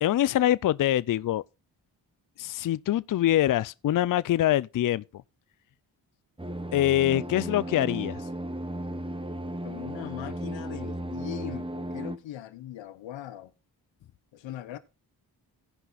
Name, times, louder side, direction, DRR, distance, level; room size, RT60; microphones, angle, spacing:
voice 1, 0.0-1.4 2.4-5.0 6.7-8.2, left 13 dB, 50° left, 0.5 m, -24 dB
sound 1, 6.4-12.2, right 1 dB, 10° right, 1.3 m, -35 dB
voice 2, 9.6-13.5 14.3-14.8, left 13 dB, 90° left, 0.9 m, -40 dB
16.5 x 5.5 x 4.0 m
supercardioid pair, 45°, 44 cm